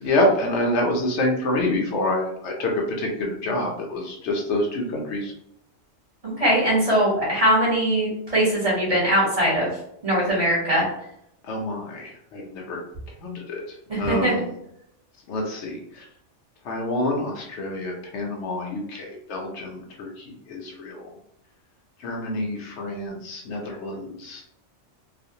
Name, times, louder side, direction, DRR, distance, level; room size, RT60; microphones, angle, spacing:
voice 1, 0.0-5.3 11.5-12.8 13.2-13.6 14.0-14.5 15.3-15.8 16.7-21.1 22.0-24.4, left 1 dB, 75° left, 0 dB, 0.9 m, -27 dB
voice 2, 6.2-9.7 10.0-10.8 13.9-14.3, right 1 dB, 35° right, -6 dB, 0.9 m, -21 dB
2.5 x 2.1 x 2.6 m, 0.74 s
omnidirectional pair, 1.2 m